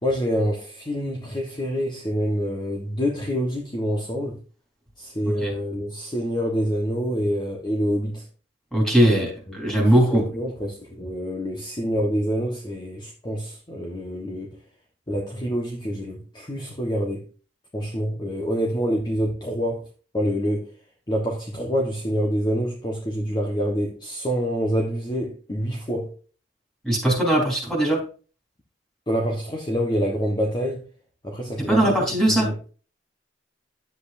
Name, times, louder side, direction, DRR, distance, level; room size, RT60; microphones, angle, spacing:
voice 1, 0.0-4.4 5.0-8.3 9.0-9.6 10.1-14.6 15.1-17.3 17.7-19.9 20.1-20.7 21.1-26.1 29.1-30.9 31.2-32.6, equal, 25° left, 1.3 m, -26 dB
voice 2, 8.7-10.2 26.8-28.0 31.6-32.5, right 1 dB, 5° left, 4.0 m, -20 dB
10.5 x 8.0 x 2.6 m
head